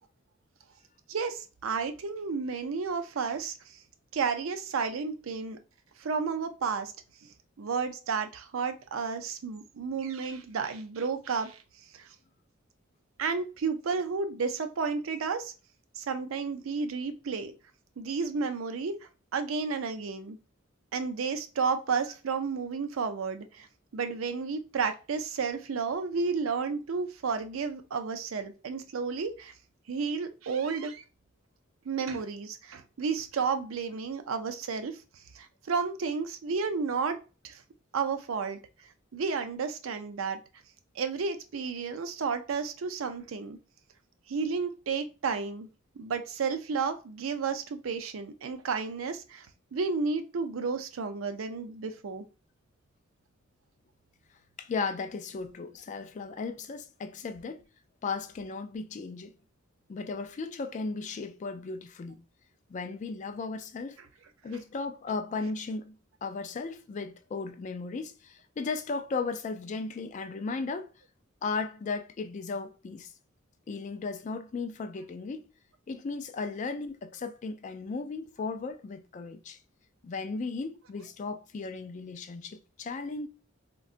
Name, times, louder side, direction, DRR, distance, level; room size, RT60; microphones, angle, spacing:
voice 1, 1.1-3.8 4.1-5.6 6.0-6.9 7.2-7.3 7.6-11.6 11.9-12.1 13.2-15.5 16.0-17.5 18.0-19.0 19.3-20.4 20.9-23.7 23.9-29.5 29.9-31.0 31.9-37.2 37.4-37.6 37.9-38.6 39.1-40.4 41.0-43.6 44.3-45.7 46.0-52.2, right 5 dB, 85° right, 0.5 m, -32 dB
voice 2, 54.6-57.6 58.0-59.3 59.9-62.2 62.7-64.0 64.4-65.9 66.2-70.9 71.4-73.1 73.7-75.5 75.9-79.6 80.0-83.3, left 4 dB, 35° left, 0.3 m, -36 dB
3.7 x 2.2 x 2.5 m
head